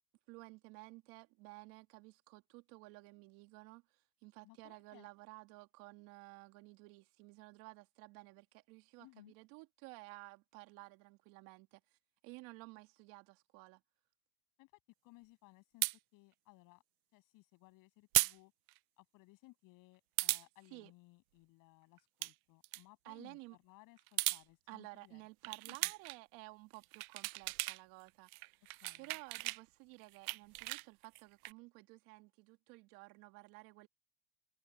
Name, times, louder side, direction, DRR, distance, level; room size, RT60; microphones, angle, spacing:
voice 1, 0.3-3.8 4.2-11.8 12.2-13.8 20.7-20.9 23.0-23.6 24.7-28.6 29.0-33.9, right 24 dB, 55° right, 2.4 m, -54 dB
voice 2, 4.4-5.1 9.0-9.3 14.6-14.7 15.0-16.8 17.1-18.5 19.0-25.2 25.6-25.9 28.8-29.2, left 22 dB, 50° left, 7.1 m, -62 dB
sound 1, 15.8-16.0 18.1-18.4 18.7-18.8 20.2-20.4 22.0-22.3 22.6-22.8 24.0-24.4 25.4-26.2 26.7-27.8 28.1-29.6 30.0-31.5, right 21 dB, 85° right, 0.5 m, -36 dB
open air
supercardioid pair, 130°, 42 cm